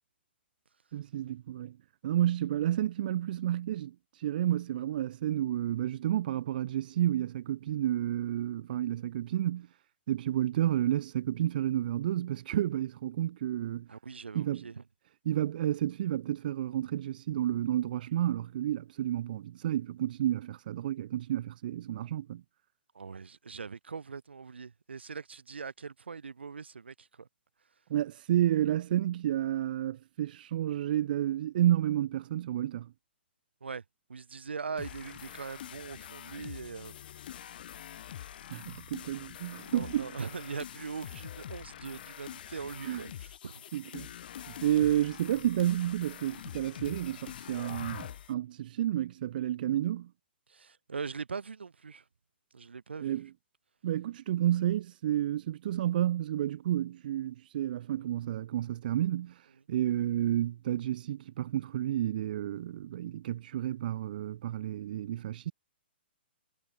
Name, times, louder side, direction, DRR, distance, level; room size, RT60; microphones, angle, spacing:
voice 1, 0.9-1.8 2.0-9.7 10.1-13.9 14.3-14.6 15.2-22.4 27.9-32.9 38.5-40.1 42.8-43.0 43.7-44.1 44.5-50.1 53.0-53.3 53.8-65.5, right 12 dB, 50° right, 1.0 m, -31 dB
voice 2, 13.9-14.8 22.9-27.3 33.6-33.8 34.1-37.0 39.7-43.6 50.5-52.0 52.5-53.2, right 5 dB, 80° right, 2.2 m, -41 dB
sound 1, 34.8-48.3, left 11 dB, 55° left, 3.8 m, -45 dB
figure-of-eight pair, 125°, 6 cm